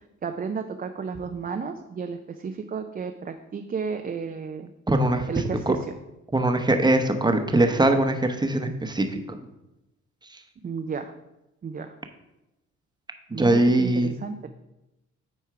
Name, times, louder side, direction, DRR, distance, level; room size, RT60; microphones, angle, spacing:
voice 1, 0.2-4.7 5.3-5.8 10.6-11.1 11.6-11.9 13.3-14.5, right 5 dB, 30° right, 6 dB, 0.5 m, -32 dB
voice 2, 4.9-5.3 5.7-5.8 6.3-9.4 13.3-14.1, right 1 dB, 15° right, 6 dB, 0.9 m, -22 dB
9.2 x 4.4 x 4.8 m, 0.94 s
cardioid pair, 90°, 30 cm